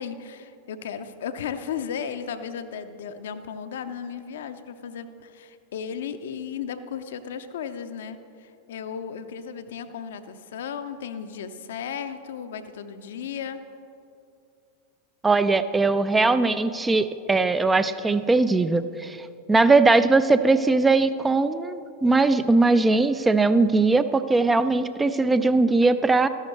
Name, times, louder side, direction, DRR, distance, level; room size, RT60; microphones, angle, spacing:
voice 1, 0.0-13.6, left 7 dB, 60° left, 10 dB, 0.5 m, -35 dB
voice 2, 15.2-26.3, right 3 dB, 10° right, 12 dB, 0.3 m, -20 dB
13.5 x 11.5 x 3.1 m, 2.6 s
figure-of-eight pair, 90°, 0 cm